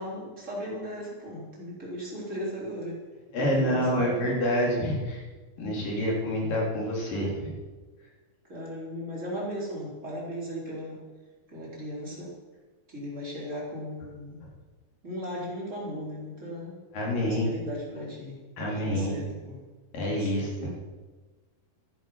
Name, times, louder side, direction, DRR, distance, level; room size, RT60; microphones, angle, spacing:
voice 1, 0.0-3.0 3.4-4.3 8.4-11.0 11.5-12.3 12.9-14.4 15.0-16.8 17.2-18.4 18.7-19.6 19.9-20.5, equal, 20° right, -5 dB, 4.0 m, -37 dB
voice 2, 3.3-5.3 5.6-7.5 16.9-17.5 18.6-19.2 19.9-20.7, equal, 65° left, -3 dB, 5.0 m, -27 dB
14.0 x 11.0 x 5.7 m, 1.3 s
omnidirectional pair, 4.3 m